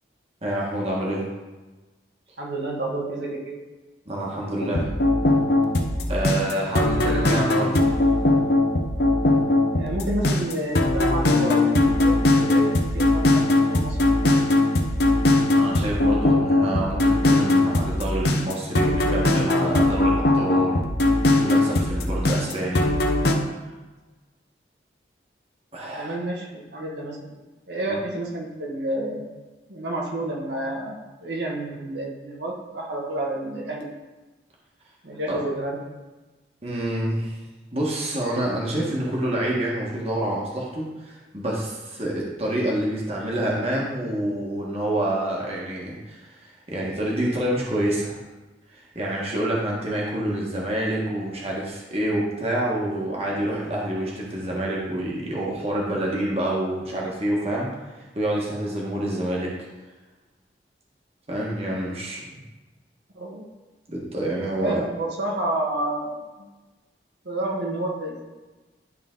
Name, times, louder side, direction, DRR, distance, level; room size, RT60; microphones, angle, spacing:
voice 1, 0.4-1.3 4.0-4.9 6.1-8.0 15.5-20.9 21.4-22.9 25.7-26.1 27.9-28.0 35.3-35.4 36.6-37.4 37.7-48.1 48.7-57.7 57.9-59.5 61.3-62.2 63.9-64.8, right 1 dB, 35° right, -4 dB, 1.4 m, -27 dB
voice 2, 2.4-3.6 6.9-7.0 9.7-14.0 14.3-14.4 26.0-27.4 27.7-29.2 29.7-33.9 35.0-35.8 63.1-63.4 64.6-66.2 67.2-68.3, right 1 dB, 75° right, -2 dB, 1.5 m, -30 dB
sound 1, 4.6-23.4, left 2 dB, 70° left, 0.8 m, -20 dB
11.0 x 3.8 x 3.8 m, 1.2 s
head